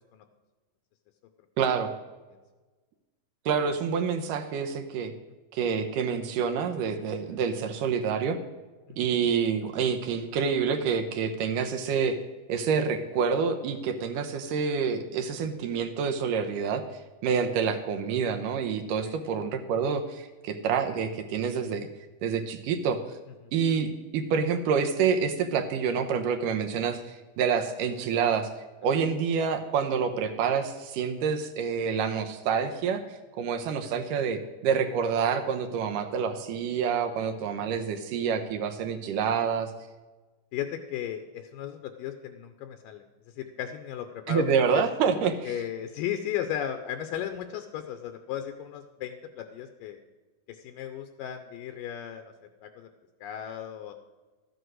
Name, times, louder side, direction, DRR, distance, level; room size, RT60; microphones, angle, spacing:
voice 1, 1.6-1.9 3.5-5.1 5.5-8.4 9.0-12.2 12.5-16.8 17.2-21.9 22.2-23.0 23.5-23.9 24.1-28.5 28.8-33.0 33.4-39.7 44.3-45.5, right 6 dB, 75° right, 7 dB, 2.3 m, -27 dB
voice 2, 40.5-43.0 43.4-44.5 44.7-44.9 45.4-50.0 50.5-52.3 52.6-52.9 53.2-53.9, left 10 dB, 80° left, 7 dB, 2.3 m, -35 dB
13.5 x 7.9 x 6.3 m, 1.2 s
omnidirectional pair, 4.1 m